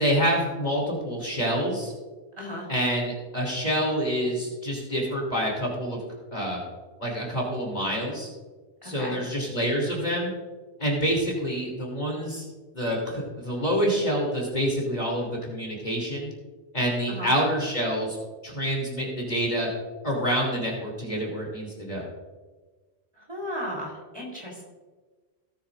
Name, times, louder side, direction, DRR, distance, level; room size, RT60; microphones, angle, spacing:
voice 1, 0.0-1.9 2.7-6.0 6.3-6.6 7.0-8.3 8.8-10.3 10.8-12.4 12.7-16.3 16.7-18.2 18.4-19.7 20.0-22.0, equal, 40° left, -2 dB, 3.1 m, -27 dB
voice 2, 2.4-2.7 8.8-9.2 17.1-17.3 23.3-24.6, equal, 25° right, -3 dB, 3.9 m, -35 dB
18.0 x 9.8 x 2.5 m, 1.3 s
omnidirectional pair, 1.1 m